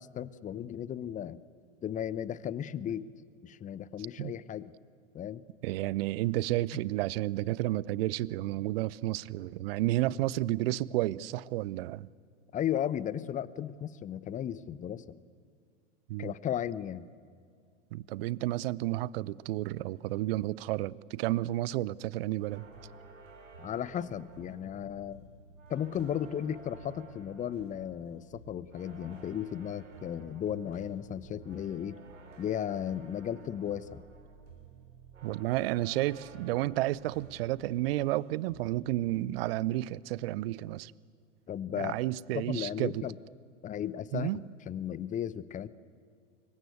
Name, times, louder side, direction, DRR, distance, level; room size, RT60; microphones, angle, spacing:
voice 1, 0.0-1.4 1.8-3.1 3.4-4.7 5.1-5.4 12.5-15.2 16.2-17.0 23.6-25.2 25.7-32.0 32.4-34.0 41.5-41.9 42.3-43.2 43.6-45.7, left 10 dB, 20° left, 19 dB, 0.8 m, -35 dB
voice 2, 5.6-12.1 16.1-16.3 17.9-22.6 35.2-40.9 41.7-43.1 44.1-44.4, right 16 dB, 50° right, 23 dB, 0.7 m, -31 dB
sound 1, 22.5-38.2 38.5-38.9, right 4 dB, 80° right, 3.4 m, -52 dB
25.5 x 23.0 x 8.1 m, 2.2 s
figure-of-eight pair, 95°, 37 cm